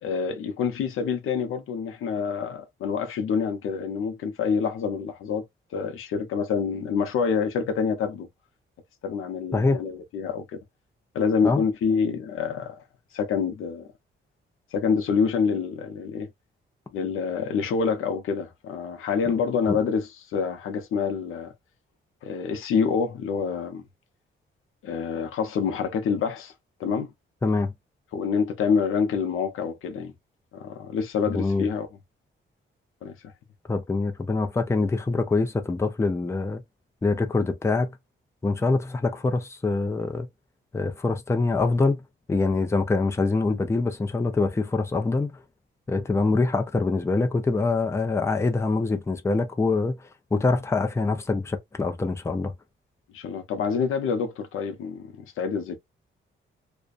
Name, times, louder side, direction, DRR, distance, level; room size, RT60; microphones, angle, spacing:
voice 1, 0.0-5.4 5.7-8.3 9.0-10.6 11.1-12.8 13.1-13.9 14.7-16.3 16.9-21.5 22.2-23.8 24.8-26.5 26.8-27.1 28.1-30.1 30.5-31.9 33.0-33.2 53.1-55.8, left 6 dB, 90° left, 0.6 m, -27 dB
voice 2, 27.4-27.7 31.3-31.7 33.7-36.6 37.0-37.9 38.4-40.3 40.7-42.0 42.3-45.3 45.9-52.5, left 3 dB, 15° left, 0.5 m, -24 dB
2.4 x 2.2 x 2.4 m
cardioid pair, 105°, 21 cm